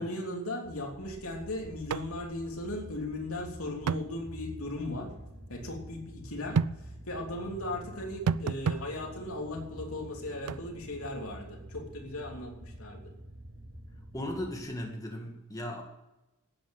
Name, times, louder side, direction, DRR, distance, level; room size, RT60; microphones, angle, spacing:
voice 1, 0.0-5.1 5.5-13.1, left 1 dB, 65° left, 2 dB, 3.2 m, -37 dB
sound 1, 0.6-14.6, equal, 50° right, 4.7 m, -47 dB
sound 2, 1.9-2.1 2.4-2.5 3.9-4.1 6.5-6.8 8.3-8.8 10.5-10.6, right 6 dB, 80° right, 0.4 m, -29 dB
voice 2, 14.1-15.8, left 1 dB, 15° left, 0 dB, 2.2 m, -37 dB
13.0 x 9.2 x 9.1 m, 0.98 s
head